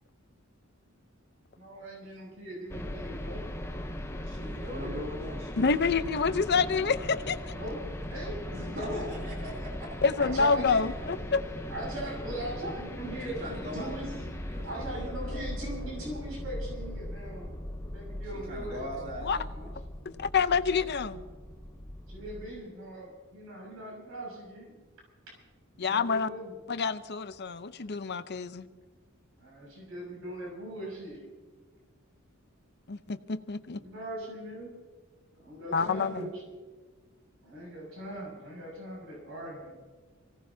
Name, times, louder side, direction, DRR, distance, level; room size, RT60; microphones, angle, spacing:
voice 1, 1.5-3.4 4.7-5.1 7.5-9.1 10.2-11.1 11.7-14.1 14.6-17.5 17.9-18.9 19.6-19.7 22.1-24.7 25.7-26.5 29.4-31.3 33.7-34.7 35.4-36.4 37.4-39.8, right 1 dB, 75° right, -2 dB, 6.4 m, -40 dB
sound 1, 2.7-22.5, left 1 dB, 15° left, 0.9 m, -39 dB
voice 2, 4.3-5.7 8.5-10.1 13.2-15.4 18.5-19.7, left 1 dB, 45° right, -3 dB, 3.2 m, -41 dB
voice 3, 5.6-7.5 10.0-11.4 19.2-19.4 20.0-21.2 25.8-26.3 26.7-28.7 32.9-33.8 35.7-36.3, left 5 dB, 55° left, 11 dB, 0.7 m, -27 dB
26.0 x 17.5 x 2.8 m, 1.4 s
head